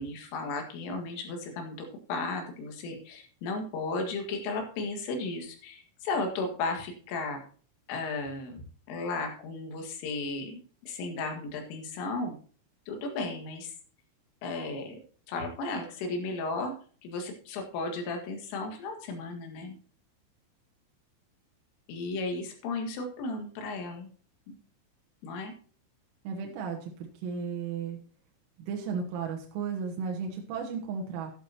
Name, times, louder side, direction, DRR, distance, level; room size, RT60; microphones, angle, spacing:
voice 1, 0.0-7.4 7.9-8.6 8.9-12.3 12.9-13.7 14.4-15.0 15.3-16.7 17.0-19.8 21.9-24.1 24.5-24.6 25.2-25.5, left 3 dB, 75° left, 3 dB, 4.4 m, -34 dB
voice 2, 26.3-28.0 28.6-31.3, right 6 dB, 85° right, 0 dB, 3.9 m, -34 dB
12.0 x 11.0 x 2.9 m, 0.43 s
omnidirectional pair, 5.8 m